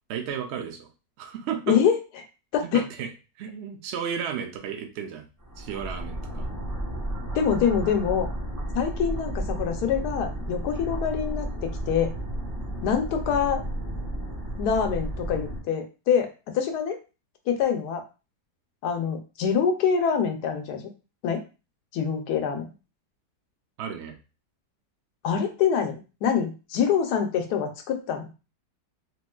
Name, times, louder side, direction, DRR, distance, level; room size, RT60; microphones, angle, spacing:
voice 1, 0.1-0.9 1.2-1.8 2.6-3.1 3.4-5.3 5.6-6.5 23.8-24.1, right 7 dB, 80° right, 5 dB, 0.6 m, -33 dB
voice 2, 1.7-2.0 2.5-2.8 7.3-8.3 8.7-12.1 12.8-13.6 14.6-17.0 17.5-18.0 18.8-20.9 21.2-21.4 21.9-22.7 25.2-28.3, left 7 dB, 75° left, 4 dB, 1.1 m, -25 dB
sound 1, 5.4-15.6, right 1 dB, 25° right, 0.4 m, -33 dB
3.1 x 3.0 x 2.2 m, 0.31 s
omnidirectional pair, 1.8 m